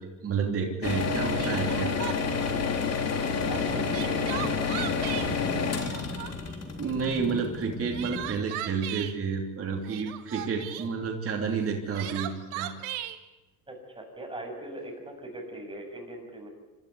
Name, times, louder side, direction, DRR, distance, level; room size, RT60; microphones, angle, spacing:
voice 1, 0.0-1.9 6.8-12.7, right 5 dB, 30° right, 1 dB, 3.0 m, -30 dB
sound 1, 0.8-7.7, left 5 dB, 35° left, 3.6 m, -29 dB
Crying sobbing, 0.9-1.0 1.3-2.4 3.6-5.3 5.8-6.6 7.6-9.1 9.8-10.9 11.6-13.2, right 14 dB, 75° right, 1.9 m, -37 dB
Drone at Rio Vista for upload, 3.2-8.4, left 3 dB, 10° left, 1.7 m, -40 dB
voice 2, 3.5-4.7 13.7-16.5, right 1 dB, 10° right, 2 dB, 7.0 m, -40 dB
25.5 x 13.0 x 9.5 m, 1.1 s
hypercardioid pair, 90°, 45 cm